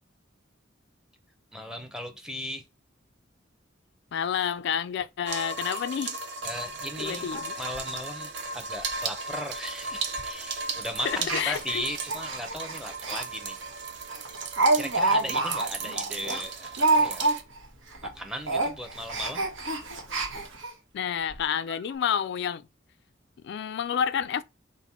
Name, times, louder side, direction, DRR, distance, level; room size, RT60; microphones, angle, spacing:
voice 1, 1.5-2.6 6.4-7.3 7.6-13.7 14.7-17.3 18.0-19.5, equal, 5° right, 0.6 m, -37 dB
voice 2, 4.1-6.2 7.0-7.4 11.1-11.8 20.9-22.7 23.4-24.4, left 8 dB, 60° left, 0.3 m, -29 dB
sound 1, 5.3-17.4, right 4 dB, 60° right, 0.6 m, -36 dB
Speech, 6.4-6.5 6.9-7.0 7.3-7.4 7.7-7.9 8.3-8.5 8.8-9.0 9.3-9.4 10.2-10.4 11.2-13.2 13.6-13.7 14.1-17.7 17.9-18.1 18.4-20.7 21.3-21.4 21.7-21.8, right 2 dB, 85° right, 1.1 m, -28 dB
4.0 x 2.1 x 4.2 m
head